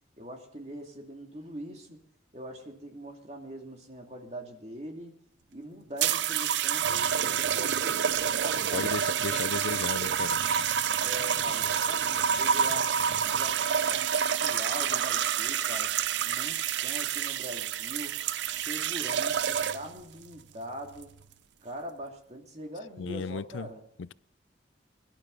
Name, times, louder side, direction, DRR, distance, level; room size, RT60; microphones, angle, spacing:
voice 1, 0.2-2.0 2.3-5.2 5.5-8.9 9.3-9.6 11.0-12.9 13.3-15.9 16.2-18.2 18.4-21.2 21.6-23.8, equal, 35° right, 2.4 m, -42 dB
sound 1, 6.0-20.0 20.9-21.2, right 8 dB, 70° right, 0.5 m, -28 dB
voice 2, 8.7-10.4 23.0-23.7 24.0-24.1, left 5 dB, 90° left, 0.5 m, -35 dB
23.0 x 11.5 x 3.9 m
head